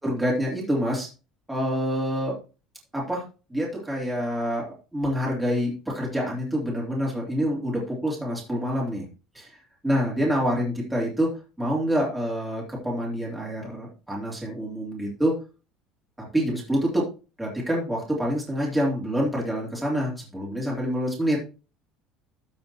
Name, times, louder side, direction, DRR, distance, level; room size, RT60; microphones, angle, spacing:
voice 1, 0.0-1.1 1.5-2.3 2.9-3.2 3.5-4.7 4.9-9.1 9.3-9.5 9.8-15.4 16.2-17.1 17.4-21.4, equal, 5° right, -4 dB, 2.9 m, -26 dB
13.0 x 6.8 x 2.8 m, 0.33 s
cardioid pair, 170°, 0 cm